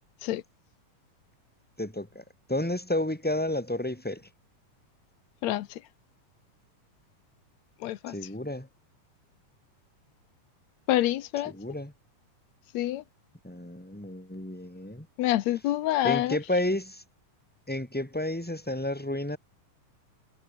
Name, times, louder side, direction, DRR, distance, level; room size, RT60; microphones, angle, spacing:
voice 1, 1.8-2.2 2.5-4.3 8.1-8.7 11.4-11.9 13.4-15.1 16.0-17.0 17.7-19.4, left 1 dB, 5° left, 3.3 m, -31 dB
voice 2, 5.4-5.8 7.8-8.1 10.9-11.5 12.7-13.0 15.2-16.4, left 14 dB, 70° left, 1.9 m, -27 dB
omnidirectional pair, 3.7 m